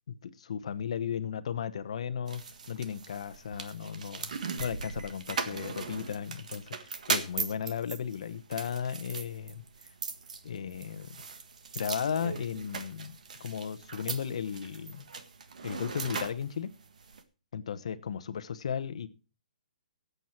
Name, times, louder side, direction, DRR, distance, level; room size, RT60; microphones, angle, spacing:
voice 1, 0.1-2.4 2.7-4.3 4.6-9.6 10.4-11.2 11.7-15.1 15.6-16.7 17.5-19.1, left 7 dB, 50° left, 11 dB, 1.1 m, -35 dB
sound 1, 2.3-17.2, right 5 dB, 65° right, 1.6 m, -39 dB
16.5 x 8.2 x 4.5 m, 0.35 s
hypercardioid pair, 175°, 4 cm